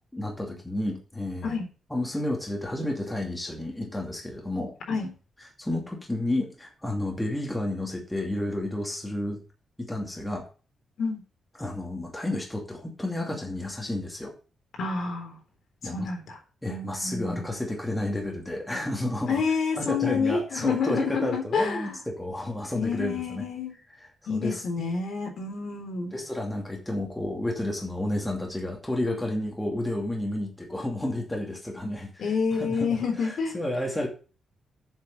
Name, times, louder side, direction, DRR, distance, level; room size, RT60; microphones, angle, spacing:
voice 1, 0.1-1.6 1.9-4.7 5.6-9.4 9.8-10.4 11.6-14.3 15.8-16.1 16.6-19.4 19.8-23.4 24.3-24.6 26.1-34.1, left 1 dB, 5° left, 0 dB, 2.6 m, -31 dB
voice 2, 14.8-15.4 15.8-16.4 16.7-17.4 19.3-22.0 22.7-23.8 24.3-26.2 32.2-33.6, left 5 dB, 60° left, 2 dB, 3.8 m, -28 dB
7.9 x 6.8 x 6.8 m, 0.36 s
wide cardioid pair, 150°, 0 cm